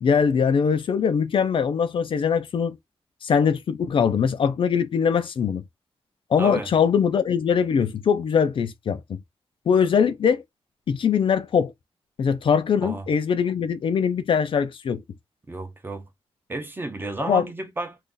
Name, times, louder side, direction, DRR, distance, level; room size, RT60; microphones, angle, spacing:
voice 1, 0.0-2.8 3.2-5.6 6.3-9.2 9.7-10.4 10.9-11.7 12.2-15.0 17.2-17.5, left 6 dB, 55° left, 0.4 m, -22 dB
voice 2, 6.4-6.7 12.8-13.0 15.5-16.1 16.5-18.0, right 2 dB, 20° right, 0.7 m, -32 dB
2.5 x 2.4 x 3.7 m
wide cardioid pair, 170°, 10 cm